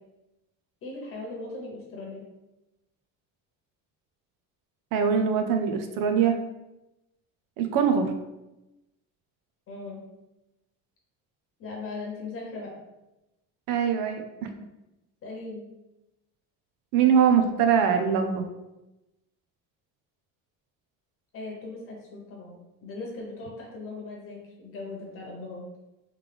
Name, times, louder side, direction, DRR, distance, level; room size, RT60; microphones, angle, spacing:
voice 1, 0.8-2.3 9.7-10.0 11.6-12.7 15.2-15.7 21.3-25.6, left 3 dB, 40° left, -1 dB, 1.0 m, -39 dB
voice 2, 4.9-6.3 7.6-8.1 13.7-14.5 16.9-18.5, right 7 dB, 70° right, 6 dB, 0.6 m, -22 dB
3.4 x 3.2 x 3.4 m, 0.96 s
cardioid pair, 165°, 35 cm